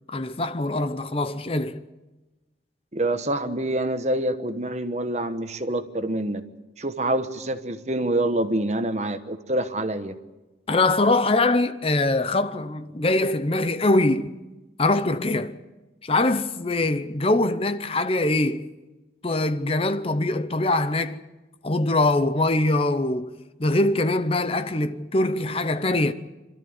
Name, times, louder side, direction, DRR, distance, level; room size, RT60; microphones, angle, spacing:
voice 1, 0.1-1.8 10.7-14.3 14.8-15.6 16.0-18.7 19.2-21.2 21.6-26.1, left 2 dB, 30° left, 0.7 m, -23 dB
voice 2, 2.9-6.4 6.8-10.2, right 1 dB, 35° right, 1.2 m, -26 dB
26.5 x 13.5 x 9.5 m
head